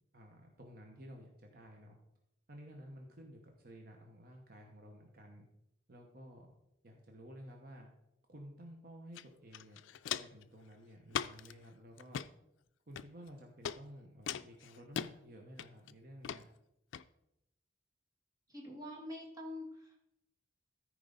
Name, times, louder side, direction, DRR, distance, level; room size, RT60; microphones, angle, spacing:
voice 1, 0.1-2.0 2.5-5.4 5.9-6.5 6.8-7.9 8.3-12.2 12.9-16.5, equal, 50° right, 2 dB, 1.0 m, -53 dB
Walk footsteps, 9.2-9.3 9.5-10.4 11.1-11.5 12.0-12.3 13.0-13.3 13.7-13.8 14.3-15.1 15.6-15.9 16.2-16.4 16.9-17.0, left 9 dB, 80° left, 0.4 m, -39 dB
voice 2, 18.5-20.1, left 1 dB, 20° right, -2 dB, 1.8 m, -46 dB
14.0 x 4.7 x 3.9 m, 0.82 s
head